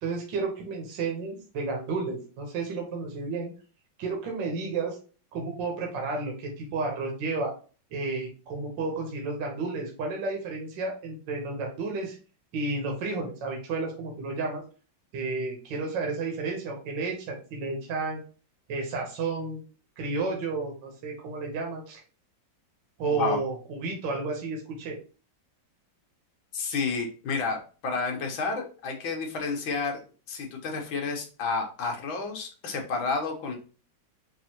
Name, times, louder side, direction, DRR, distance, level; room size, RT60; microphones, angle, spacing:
voice 1, 0.0-3.5 4.0-5.0 5.3-7.5 7.9-12.2 12.5-14.6 15.1-18.2 18.7-19.6 20.0-22.0 23.0-25.0, right 3 dB, 70° right, 0 dB, 1.7 m, -32 dB
voice 2, 26.5-30.0 30.3-33.6, left 4 dB, 80° left, 2 dB, 1.8 m, -30 dB
5.3 x 2.8 x 2.9 m, 0.36 s
omnidirectional pair, 2.2 m